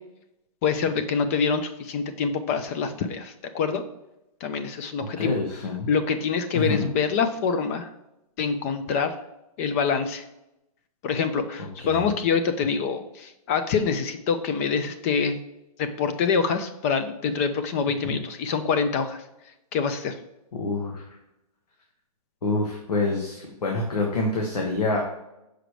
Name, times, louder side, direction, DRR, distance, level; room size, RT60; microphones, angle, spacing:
voice 1, 0.6-3.8 4.4-5.4 5.9-7.9 8.4-9.1 9.6-10.2 11.0-15.4 15.8-19.2 19.7-20.2, left 6 dB, 25° left, 9 dB, 0.4 m, -25 dB
voice 2, 5.2-5.9 6.5-6.9 11.6-12.1 18.0-18.2 20.5-21.2 22.4-25.0, left 2 dB, 85° left, 0 dB, 1.5 m, -27 dB
6.5 x 5.0 x 3.1 m, 0.88 s
hypercardioid pair, 155°, 20 cm